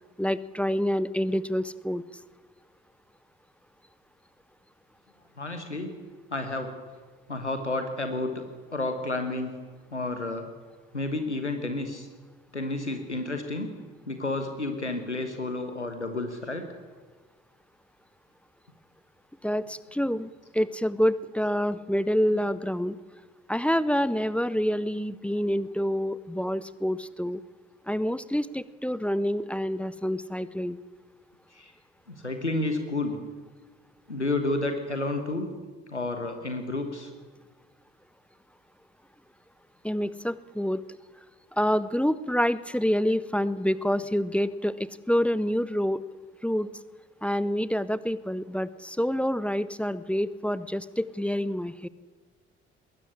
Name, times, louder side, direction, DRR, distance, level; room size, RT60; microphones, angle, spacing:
voice 1, 0.2-2.0 19.4-23.0 23.5-27.4 27.9-30.8 39.8-40.8 41.5-46.0 46.4-46.7 47.2-51.9, equal, 5° left, 17 dB, 0.8 m, -27 dB
voice 2, 5.4-5.9 6.3-6.7 7.3-8.4 8.7-9.6 9.9-10.5 10.9-12.1 12.5-13.7 14.1-16.7 31.5-31.7 32.1-33.2 34.1-35.5 35.9-37.1, left 2 dB, 90° left, 7 dB, 1.3 m, -30 dB
20.5 x 16.0 x 9.9 m, 1.4 s
figure-of-eight pair, 45°, 34 cm